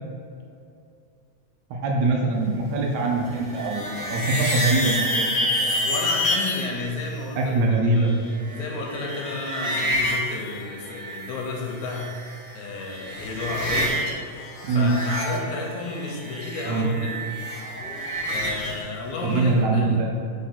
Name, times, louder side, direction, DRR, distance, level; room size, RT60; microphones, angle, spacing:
voice 1, 1.7-5.7 7.4-8.1 14.6-15.0 16.7-16.9 19.2-20.2, right 2 dB, 75° right, 0 dB, 1.8 m, -23 dB
sound 1, 3.3-6.7 8.1-11.4 11.7-12.5 12.8-14.1 14.4-18.8, equal, 55° left, 2.2 m, -28 dB
voice 2, 5.7-7.5 7.9-8.1 8.5-12.1 12.5-14.0 14.7-17.3 18.3-20.0, left 3 dB, 75° left, -1 dB, 2.2 m, -32 dB
5.0 x 4.2 x 5.7 m, 2.5 s
omnidirectional pair, 3.7 m